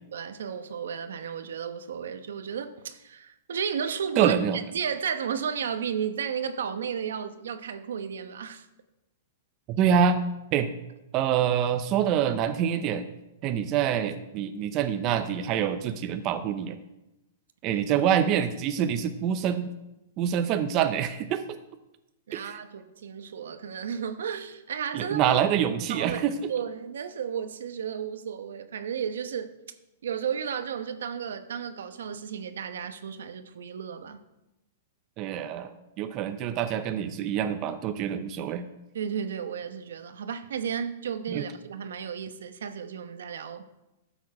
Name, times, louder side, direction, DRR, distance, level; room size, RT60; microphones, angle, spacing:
voice 1, 0.1-8.7 17.7-17.8 22.3-25.4 25.9-29.6 30.0-34.2 38.9-43.6, right 7 dB, 85° right, 0.9 m, -33 dB
voice 2, 4.2-4.6 9.7-10.2 10.5-10.7 11.1-13.0 13.4-16.8 17.6-19.7 20.2-21.4 22.3-22.6 24.9-26.3 35.2-38.7 41.3-41.4, right 8 dB, 30° right, 0.6 m, -26 dB
12.5 x 7.2 x 4.8 m
hypercardioid pair, 160°, 0 cm